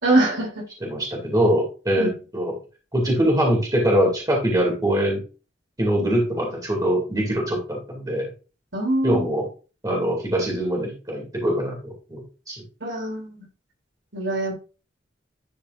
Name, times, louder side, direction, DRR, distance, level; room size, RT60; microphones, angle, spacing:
voice 1, 0.0-0.5 2.0-2.1 8.7-9.3 12.8-13.4 14.1-14.5, right 2 dB, 75° right, 0 dB, 2.9 m, -23 dB
voice 2, 0.8-2.6 2.9-5.2 5.8-8.3 9.0-9.5 9.8-12.6, equal, 20° right, 0 dB, 2.3 m, -23 dB
11.0 x 4.8 x 2.5 m, 0.33 s
head